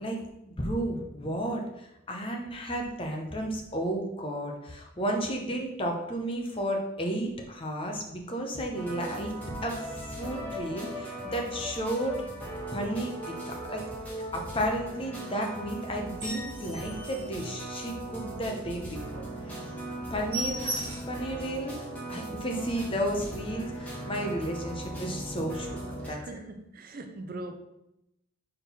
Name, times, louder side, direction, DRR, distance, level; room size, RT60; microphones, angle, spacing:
voice 1, 0.0-9.3 9.6-12.1 12.7-13.8 14.3-19.6 20.1-25.8 26.1-26.4, right 1 dB, 25° left, 0.8 m, -33 dB
sound 1, 8.7-26.1, right 1 dB, 5° left, 1.2 m, -39 dB
sound 2, 16.0-18.2 18.6-18.8 19.1-19.2 19.5-19.7 19.9-21.2 21.7-21.8 22.2-22.3 22.5-23.0 23.7-23.9, right 1 dB, 25° right, 1.8 m, -38 dB
voice 2, 26.0-27.6, right 2 dB, 40° right, 0.4 m, -41 dB
4.6 x 3.7 x 5.5 m
head